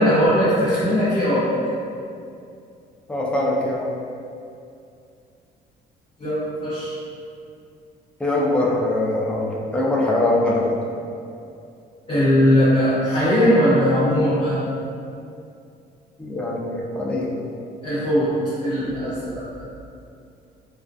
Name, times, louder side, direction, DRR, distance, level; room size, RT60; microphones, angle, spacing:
voice 1, 0.0-1.5 6.2-7.0 12.1-14.6 17.8-18.3 18.6-19.4, equal, 30° left, -13 dB, 0.8 m, -19 dB
voice 2, 3.1-3.9 8.2-10.7 16.2-17.3, left 2 dB, 5° left, -4 dB, 0.4 m, -22 dB
2.2 x 2.2 x 2.5 m, 2.5 s
cardioid pair, 110°, 17 cm